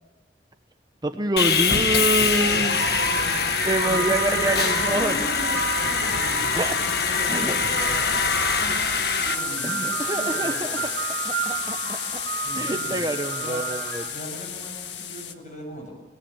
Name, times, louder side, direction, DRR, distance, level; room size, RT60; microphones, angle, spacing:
voice 1, 1.0-2.8 3.6-5.1 6.5-6.7 7.3-7.6 9.6-10.8 11.2-12.2 12.5-14.1, right 2 dB, 25° right, 7 dB, 1.0 m, -26 dB
Sawing, 1.4-9.3, left 5 dB, 65° left, 1.5 m, -23 dB
voice 2, 1.8-6.4 7.0-10.8 12.4-13.0 13.4-13.6 14.1-15.9, equal, 45° left, 2 dB, 7.3 m, -38 dB
sound 1, 2.3-14.3, right 6 dB, 65° right, 1.1 m, -32 dB
sound 2, 2.9-15.3, left 9 dB, 90° left, 1.7 m, -33 dB
29.5 x 19.0 x 7.2 m, 1.4 s
head